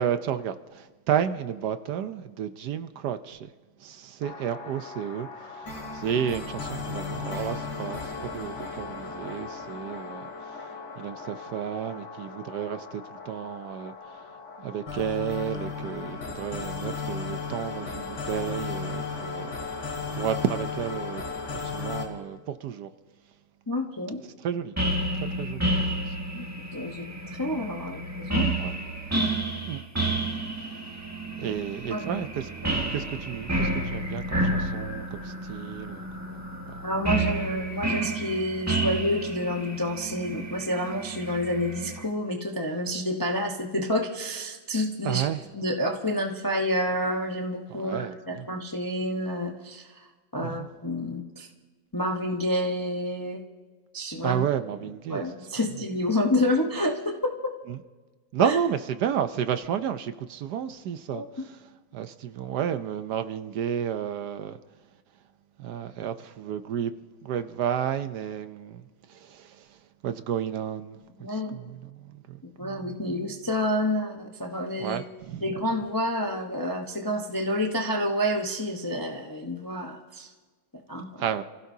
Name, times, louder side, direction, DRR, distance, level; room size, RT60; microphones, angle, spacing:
voice 1, 0.0-3.5 3.8-10.7 11.0-14.3 14.6-19.5 20.1-21.2 21.6-22.9 24.4-24.7 25.4-26.1 28.6-28.7 29.7-30.4 31.3-32.5 32.9-36.8 45.0-45.4 47.7-48.5 50.4-50.7 54.2-55.3 57.7-57.8 58.3-61.6 61.9-64.6 65.6-66.9 67.2-68.8 69.1-69.7 70.0-71.0 71.3-73.3 74.8-75.5 81.2-81.4, right 9 dB, 70° right, 1.2 m, -32 dB
sound 1, 4.2-22.1, left 4 dB, 85° left, 3.0 m, -36 dB
voice 2, 23.7-24.2 26.3-26.4 26.7-27.0 27.4-28.6 31.4-31.5 31.9-32.2 36.8-45.2 45.5-49.9 50.3-51.5 51.9-53.4 53.9-54.4 55.1-57.5 58.4-58.6 61.1-61.5 71.2-71.5 72.6-75.0 75.4-80.3 80.9-81.1, left 1 dB, 15° left, 0.7 m, -29 dB
sound 2, 24.8-42.0, right 2 dB, 10° right, 1.5 m, -30 dB
29.0 x 16.0 x 2.8 m
omnidirectional pair, 2.0 m